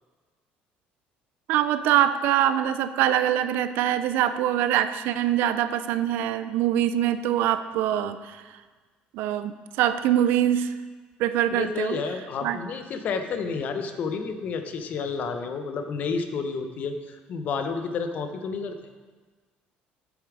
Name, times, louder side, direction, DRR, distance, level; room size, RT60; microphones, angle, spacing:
voice 1, 1.5-8.4 9.1-10.7 11.2-12.0 12.4-12.6, right 11 dB, 75° right, 11 dB, 0.5 m, -24 dB
voice 2, 11.5-18.7, left 5 dB, 50° left, 7 dB, 0.8 m, -30 dB
7.3 x 7.1 x 4.8 m, 1.4 s
cardioid pair, 135°, 3 cm